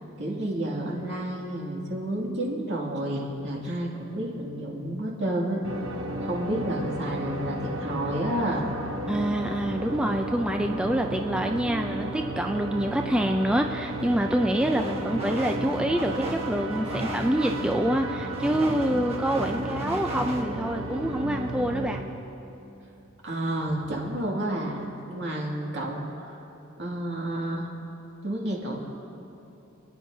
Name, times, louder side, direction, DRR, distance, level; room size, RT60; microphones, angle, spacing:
voice 1, 0.2-5.6 6.2-8.7 23.2-26.4 26.8-27.7 28.2-28.8, right 1 dB, 60° right, -3 dB, 2.4 m, -30 dB
sound 1, 5.6-22.0, right 1 dB, 75° right, 1.1 m, -33 dB
voice 2, 9.1-22.0, right 1 dB, 5° right, 3 dB, 0.3 m, -26 dB
sound 2, 14.6-20.4, right 1 dB, 30° right, 1.2 m, -37 dB
29.0 x 10.0 x 2.7 m, 2.9 s
head